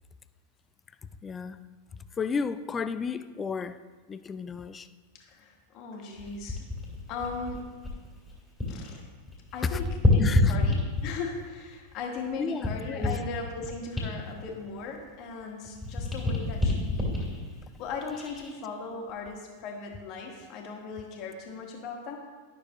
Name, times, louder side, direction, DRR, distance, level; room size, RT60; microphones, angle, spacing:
voice 1, 1.2-1.6 2.2-3.8 4.1-4.9 9.7-9.8 10.2-10.6 12.4-13.2, left 5 dB, 20° left, 13 dB, 0.3 m, -33 dB
voice 2, 5.2-6.6 7.1-7.6 8.7-9.0 9.5-17.2 17.8-22.2, left 4 dB, 40° left, 1 dB, 1.4 m, -38 dB
sound 1, 6.2-8.9 9.2-11.3 11.9-15.4 15.7-18.5 19.1-19.3, left 2 dB, ahead, 2.5 m, -29 dB
12.0 x 6.2 x 2.9 m, 1.4 s
figure-of-eight pair, 90°, 0 cm